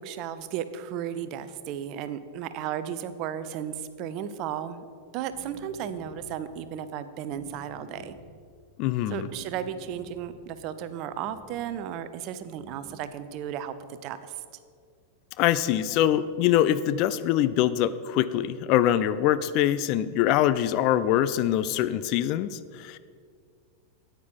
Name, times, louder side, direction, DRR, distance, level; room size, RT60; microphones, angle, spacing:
voice 1, 0.0-4.8 5.1-8.1 9.1-14.3, right 9 dB, 40° right, 13 dB, 0.6 m, -34 dB
sound 1, 5.3-6.4 7.3-8.4 9.3-10.4 11.2-11.8 12.5-13.1, left 1 dB, 15° left, 3.1 m, -49 dB
voice 2, 8.8-9.3 15.4-23.0, left 12 dB, 40° left, 14 dB, 0.4 m, -24 dB
9.4 x 8.9 x 5.5 m, 2.1 s
figure-of-eight pair, 90°, 0 cm